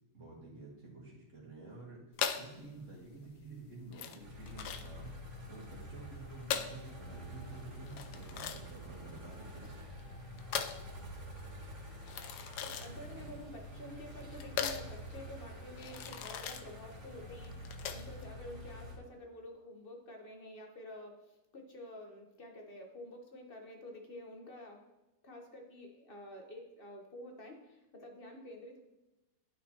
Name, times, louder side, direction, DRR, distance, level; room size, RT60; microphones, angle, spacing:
voice 1, 0.1-2.0 2.3-5.1 5.5-9.7, right 2 dB, 45° right, -4 dB, 2.0 m, -50 dB
sound 1, 2.1-18.3, left 8 dB, 70° left, 1.1 m, -41 dB
sound 2, 4.2-19.0, equal, 60° right, 2.6 m, -48 dB
voice 2, 12.6-24.9 25.2-28.8, left 1 dB, 40° left, 2 dB, 0.9 m, -49 dB
11.5 x 4.6 x 2.9 m, 0.99 s
omnidirectional pair, 1.9 m